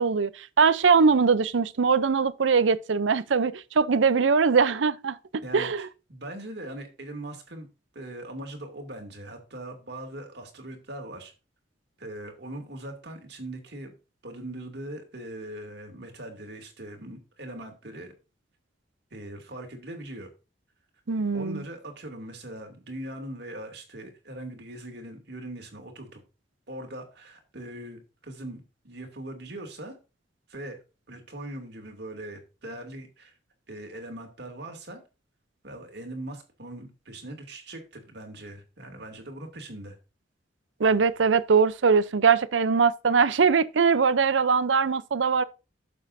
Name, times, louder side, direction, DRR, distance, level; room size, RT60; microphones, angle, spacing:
voice 1, 0.0-5.9 21.1-21.6 40.8-45.4, right 5 dB, 90° right, 0.6 m, -22 dB
voice 2, 5.4-7.7 7.9-11.3 12.0-13.9 14.2-18.1 19.1-20.3 21.3-26.2 26.7-30.0 30.5-30.8 31.1-33.3 33.7-35.0 35.6-40.0, right 1 dB, 65° right, 2.7 m, -40 dB
11.5 x 7.2 x 2.7 m
head